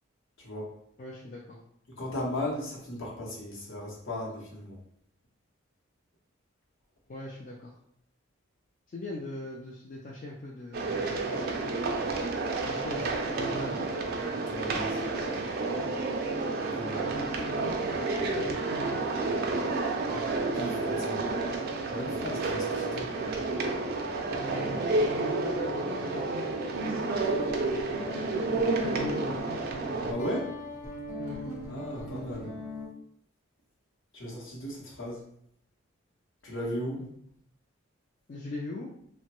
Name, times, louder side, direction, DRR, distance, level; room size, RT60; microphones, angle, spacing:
voice 1, 0.4-0.7 2.0-4.8 14.4-15.0 16.7-17.1 20.1-21.2 21.9-23.1 30.1-30.5 31.7-32.5 34.1-35.2 36.4-37.1, left 1 dB, 65° left, -3 dB, 0.9 m, -36 dB
voice 2, 1.0-1.6 7.1-7.7 8.9-11.1 12.6-13.7 16.9-19.0 24.3-26.4 26.7-28.3 28.8-29.6 31.2-31.4 37.0-37.2 38.3-38.9, left 2 dB, 40° left, -3 dB, 0.3 m, -41 dB
sound 1, 10.7-30.1, right 3 dB, 45° right, 0.3 m, -30 dB
Guitar, 27.2-32.9, left 1 dB, 85° left, 1.0 m, -40 dB
2.9 x 2.1 x 2.9 m, 0.70 s
head